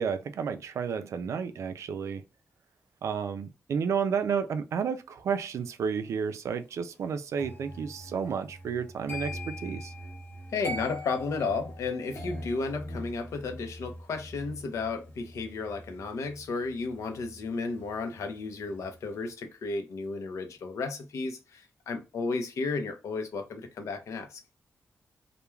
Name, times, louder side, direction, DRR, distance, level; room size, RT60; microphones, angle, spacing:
voice 1, 0.0-2.2 3.0-9.9, right 6 dB, 75° right, 0.3 m, -31 dB
sound 1, 7.4-18.3 18.6-19.0, left 1 dB, 40° left, 0.8 m, -42 dB
voice 2, 10.5-24.4, left 4 dB, 85° left, 0.6 m, -33 dB
2.3 x 2.2 x 3.0 m
wide cardioid pair, 125°, 5 cm